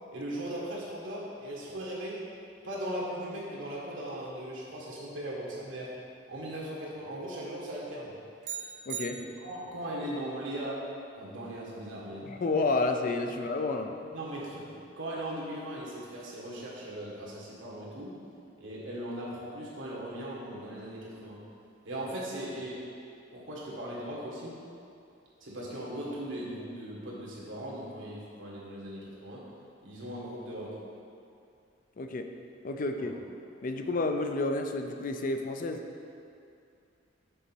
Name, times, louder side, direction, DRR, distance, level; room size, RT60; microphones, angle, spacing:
voice 1, 0.1-2.2 2.6-5.9 6.3-8.1 9.1-10.9 11.2-12.3 13.3-13.4 14.1-18.1 18.6-21.4 21.8-22.9 23.3-24.6 25.4-29.4 29.8-30.8 33.0-33.2, right 1 dB, 80° right, -5 dB, 1.8 m, -38 dB
sound 1, 8.4-9.8, right 8 dB, 40° right, 0.4 m, -40 dB
voice 2, 8.9-9.2 12.2-13.9 32.0-32.3 32.6-33.1 33.6-35.8, left 3 dB, 45° left, 5 dB, 0.4 m, -30 dB
6.7 x 4.0 x 6.1 m, 2.5 s
head